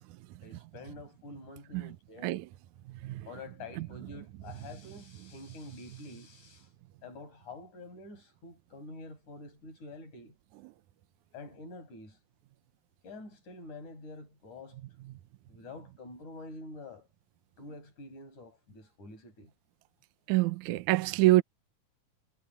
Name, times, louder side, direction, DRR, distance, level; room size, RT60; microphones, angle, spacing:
voice 1, 0.4-2.4 3.3-6.7 7.0-10.3 11.3-12.2 13.0-14.8 15.5-17.1 17.6-19.5, left 2 dB, 60° left, 9.4 m, -47 dB
voice 2, 20.3-21.4, right 18 dB, 75° right, 2.0 m, -25 dB
omnidirectional pair, 3.8 m